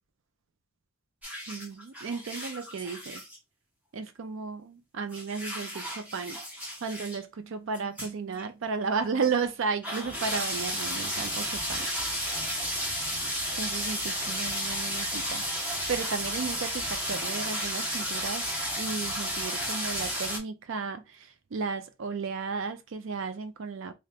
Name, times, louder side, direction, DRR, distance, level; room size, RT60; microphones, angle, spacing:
sound 1, 1.2-3.4 5.1-7.2 7.7-8.1 8.4-8.5 9.2-9.3 9.8-20.4, equal, 5° right, 0.7 m, -33 dB
voice 1, 1.5-3.2 3.9-6.4 6.8-11.9 13.6-18.4 18.8-23.9, right 5 dB, 55° right, 0.4 m, -34 dB
2.8 x 2.4 x 3.3 m
head